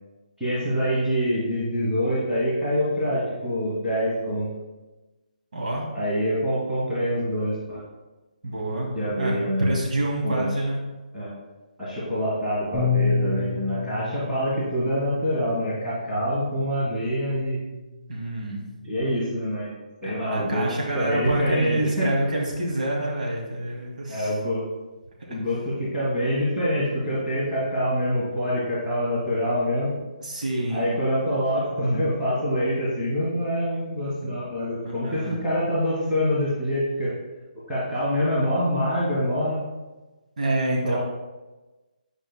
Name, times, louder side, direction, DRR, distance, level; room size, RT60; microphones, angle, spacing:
voice 1, 0.4-4.5 5.9-7.8 8.9-9.7 10.2-10.5 11.1-11.3 11.8-17.6 18.8-19.7 20.0-20.6 20.9-22.1 24.1-24.6 25.3-29.9 30.7-37.1 37.7-39.6 40.8-41.0, equal, 5° right, -15 dB, 1.7 m, -25 dB
voice 2, 5.5-5.8 8.4-10.8 18.1-18.6 20.0-24.3 30.2-30.9 34.8-35.3 40.4-41.0, right 1 dB, 65° right, -2 dB, 2.1 m, -27 dB
Bass guitar, 12.7-19.0, left 4 dB, 15° left, 1.1 m, -31 dB
9.8 x 5.0 x 2.2 m, 1.1 s
hypercardioid pair, 165°, 5 cm